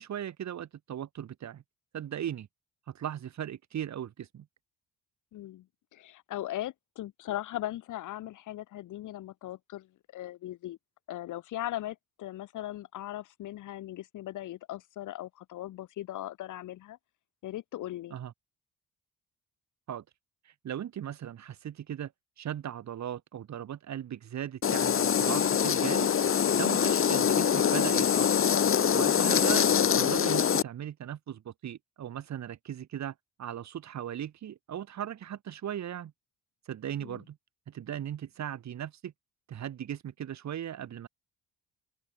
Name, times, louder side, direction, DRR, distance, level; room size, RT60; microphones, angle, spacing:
voice 1, 0.0-1.6 1.9-2.5 2.9-4.5 18.1-18.3 19.9-20.0 20.5-22.1 22.4-26.1 26.5-28.3 28.9-36.1 36.7-37.4 37.7-39.1 39.5-41.1, right 10 dB, 65° right, 5.4 m, -38 dB
voice 2, 5.3-5.7 5.9-10.8 11.1-17.0 17.4-18.2 26.6-26.9 37.0-37.2, left 14 dB, 80° left, 3.0 m, -39 dB
sound 1, 24.6-30.6, left 8 dB, 45° left, 1.4 m, -24 dB
open air
cardioid pair, 90°, 30 cm